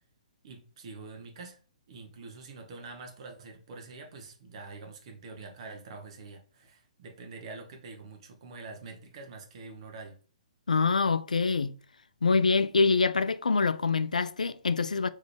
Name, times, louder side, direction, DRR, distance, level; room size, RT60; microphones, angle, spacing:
voice 1, 0.4-1.6 1.9-10.2, right 3 dB, 50° right, 1.1 m, -45 dB
voice 2, 10.7-11.7 12.2-15.1, left 4 dB, 80° left, 0.3 m, -25 dB
4.0 x 3.2 x 3.3 m
figure-of-eight pair, 130°, 4 cm